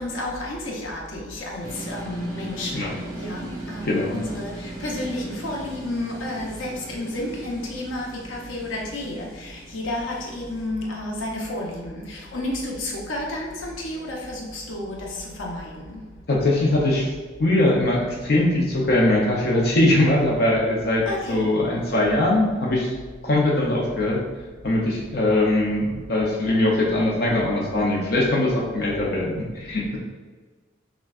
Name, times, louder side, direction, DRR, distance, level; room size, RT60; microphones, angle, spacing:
voice 1, 0.0-16.0 21.1-21.4, left 1 dB, 85° left, -2 dB, 0.8 m, -31 dB
sound 1, 1.6-10.7, right 2 dB, 65° right, 1.5 m, -39 dB
voice 2, 3.9-4.2 16.3-17.1 17.4-22.9 23.2-24.2 24.6-30.0, left 1 dB, 50° left, -4 dB, 0.6 m, -21 dB
5.9 x 2.3 x 2.3 m, 1.3 s
head